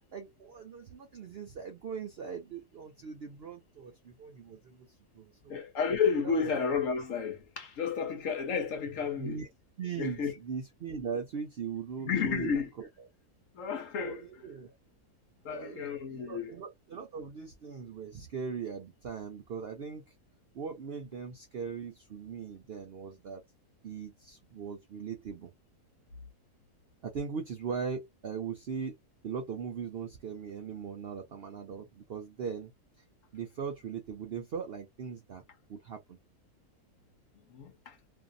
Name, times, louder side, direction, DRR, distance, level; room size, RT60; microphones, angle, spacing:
voice 1, 0.1-4.9 5.1-5.6 6.2-6.6 9.2-9.5 9.8-12.9 13.9-14.7 15.5-20.1 20.5-23.4 23.8-25.5 27.0-29.0 29.2-32.7 33.3-35.4 35.7-36.2, right 6 dB, 65° right, 0.6 m, -39 dB
voice 2, 5.5-9.4 10.0-10.3 12.0-12.7 13.5-14.4 15.4-16.5 37.5-38.0, left 6 dB, 60° left, 1.1 m, -32 dB
2.6 x 2.5 x 2.4 m
omnidirectional pair, 1.6 m